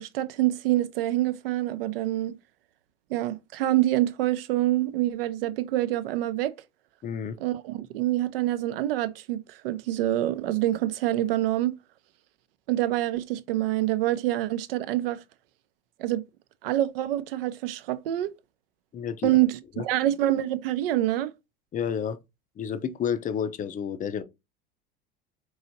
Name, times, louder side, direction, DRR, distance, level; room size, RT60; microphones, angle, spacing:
voice 1, 0.0-2.4 3.1-6.5 7.4-11.8 12.7-15.2 16.0-16.2 16.6-18.3 19.2-21.3, right 14 dB, 65° right, 0.5 m, -26 dB
voice 2, 7.0-7.4 18.9-19.4 19.8-19.9 21.7-22.2 22.6-24.2, left 8 dB, 25° left, 0.5 m, -30 dB
4.7 x 2.9 x 2.6 m
hypercardioid pair, 75°, 30 cm